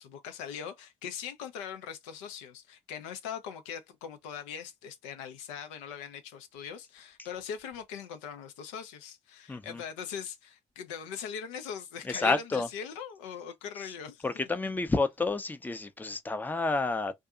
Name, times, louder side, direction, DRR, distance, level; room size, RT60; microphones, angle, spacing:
voice 1, 0.0-14.2, left 7 dB, 80° left, 0.4 m, -41 dB
voice 2, 9.5-9.8 12.1-12.7 14.2-17.1, left 3 dB, 10° left, 0.5 m, -29 dB
2.6 x 2.4 x 2.3 m
hypercardioid pair, 50°, 16 cm